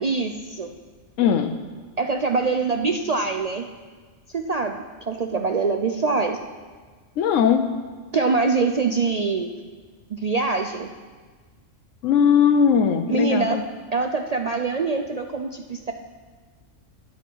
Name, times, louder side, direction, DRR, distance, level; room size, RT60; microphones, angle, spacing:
voice 1, 0.0-0.7 2.0-3.7 4.3-6.4 8.1-9.5 10.1-10.9 13.1-13.6 13.9-15.9, right 4 dB, 55° right, 4 dB, 0.4 m, -24 dB
voice 2, 1.2-1.6 7.2-7.7 12.0-13.6, left 7 dB, 75° left, 7 dB, 1.0 m, -19 dB
13.5 x 9.5 x 4.6 m, 1.5 s
omnidirectional pair, 1.3 m